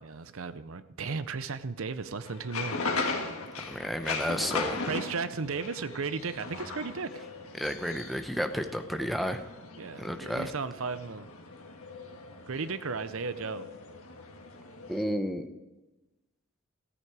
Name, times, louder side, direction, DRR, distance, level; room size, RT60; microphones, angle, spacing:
voice 1, 0.0-2.8 4.9-7.1 9.8-11.3 12.5-13.7, right 4 dB, 65° right, 13 dB, 0.7 m, -35 dB
sound 1, 2.2-15.0, left 3 dB, 70° left, 1.8 m, -38 dB
voice 2, 3.6-4.8 7.6-9.4 10.0-10.5 14.9-15.5, equal, ahead, 7 dB, 0.8 m, -32 dB
14.0 x 14.0 x 4.8 m, 1.1 s
head